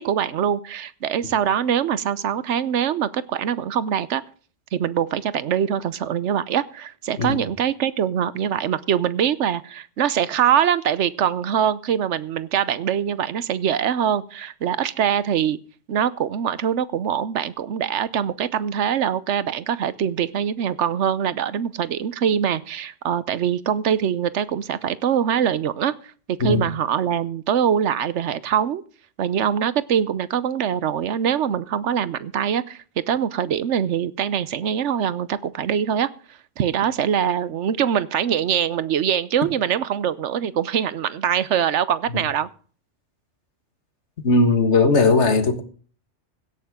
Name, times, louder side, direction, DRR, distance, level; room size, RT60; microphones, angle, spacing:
voice 1, 0.0-4.2 4.7-15.6 15.9-25.9 26.3-28.8 29.2-36.1 36.6-42.5, right 9 dB, 80° right, 1.1 m, -23 dB
voice 2, 44.2-45.6, left 3 dB, 70° left, 1.9 m, -18 dB
17.0 x 11.5 x 3.7 m
omnidirectional pair, 1.2 m